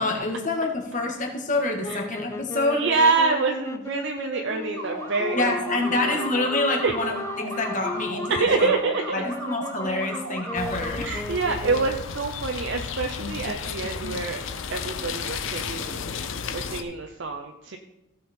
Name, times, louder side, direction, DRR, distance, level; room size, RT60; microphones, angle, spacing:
voice 1, 0.0-2.8 5.3-8.7 9.1-11.1, left 2 dB, 35° left, 1 dB, 1.7 m, -27 dB
sound 1, 1.8-12.2, left 2 dB, 10° left, 0.3 m, -36 dB
voice 2, 2.7-6.2 6.8-6.9 8.3-9.2 11.0-14.4 14.7-17.8, right 4 dB, 55° right, 3 dB, 0.7 m, -26 dB
sound 2, 4.8-10.9, right 2 dB, 90° right, 2.1 m, -36 dB
sound 3, 10.6-16.8, left 5 dB, 60° left, 0.7 m, -33 dB
16.0 x 5.7 x 4.4 m, 0.94 s
head